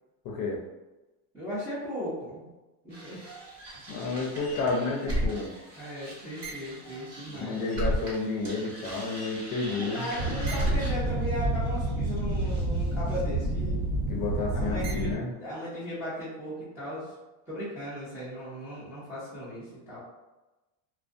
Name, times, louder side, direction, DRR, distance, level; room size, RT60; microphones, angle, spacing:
voice 1, 0.2-0.6 3.9-5.5 7.3-10.1 14.1-15.3, left 3 dB, 40° left, -1 dB, 0.6 m, -31 dB
voice 2, 1.3-2.5 2.8-3.3 5.8-7.6 9.7-13.8 14.5-17.1 17.5-20.0, equal, 5° right, -12 dB, 0.4 m, -37 dB
sound 1, 2.9-8.2 8.4-15.2, right 1 dB, 55° right, 1.2 m, -31 dB
2.4 x 2.2 x 2.4 m, 1.1 s
supercardioid pair, 140°, 50 cm